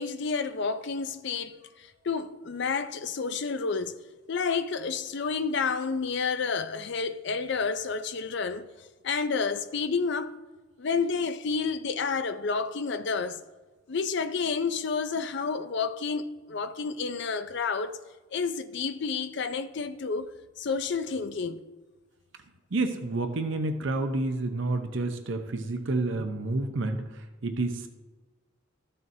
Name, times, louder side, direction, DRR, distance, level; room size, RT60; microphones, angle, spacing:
voice 1, 0.0-3.9 4.3-8.7 9.0-10.4 10.8-13.4 13.9-18.0 18.3-20.3 20.6-21.6, left 5 dB, 55° left, 0.5 m, -30 dB
voice 2, 22.7-27.0 27.4-27.9, right 2 dB, 60° right, 0.7 m, -29 dB
13.5 x 6.7 x 2.7 m
head